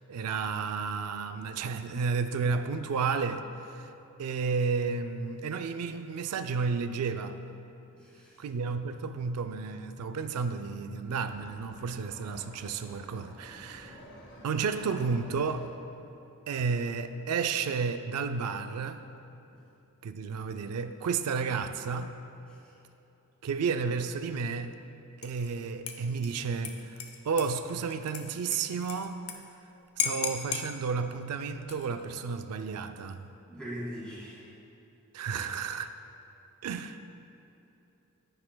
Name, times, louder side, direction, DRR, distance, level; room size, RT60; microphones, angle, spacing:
voice 1, 0.0-3.4 3.7-3.9 4.2-7.4 8.4-14.0 14.4-15.7 16.5-19.0 20.0-22.1 23.4-24.8 25.2-29.2 30.0-33.3 35.1-35.9 36.6-37.0, right 5 dB, 90° right, 9 dB, 0.4 m, -32 dB
voice 2, 7.9-8.4 22.5-22.7 33.5-34.5, equal, 5° left, -7 dB, 1.9 m, -41 dB
sound 1, 11.0-15.7, equal, 55° left, 1.4 m, -51 dB
Dishes pots and pans / Liquid, 25.2-25.5 25.9-29.3 29.6-29.7 30.0-30.7 31.5-32.0, left 7 dB, 80° left, 0.7 m, -36 dB
10.0 x 9.7 x 2.2 m, 3.0 s
head